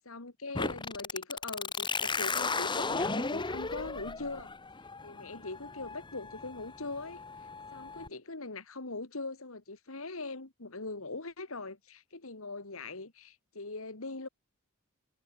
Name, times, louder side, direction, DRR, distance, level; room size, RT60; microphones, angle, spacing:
voice 1, 0.0-4.5 5.0-14.3, left 3 dB, 70° left, 2.2 m, -41 dB
sound 1, 0.5-8.1, left 4 dB, 20° left, 1.2 m, -35 dB
head